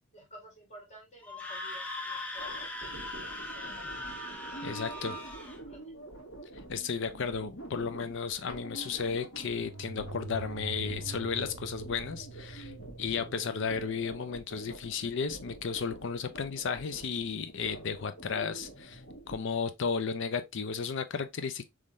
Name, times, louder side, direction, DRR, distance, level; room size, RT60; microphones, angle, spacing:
voice 1, 0.1-2.7 3.5-4.4 4.9-5.9, right 1 dB, 35° left, 1.5 m, -53 dB
Screaming, 1.2-5.6, left 1 dB, 5° left, 0.6 m, -39 dB
sound 1, 2.4-19.4, right 2 dB, 80° left, 1.7 m, -47 dB
sound 2, 4.1-4.2 9.6-14.1, right 2 dB, 60° right, 0.5 m, -44 dB
voice 2, 4.6-5.2 6.7-12.7 13.0-19.0 19.3-21.7, left 5 dB, 60° left, 0.5 m, -34 dB
3.6 x 3.2 x 2.5 m
head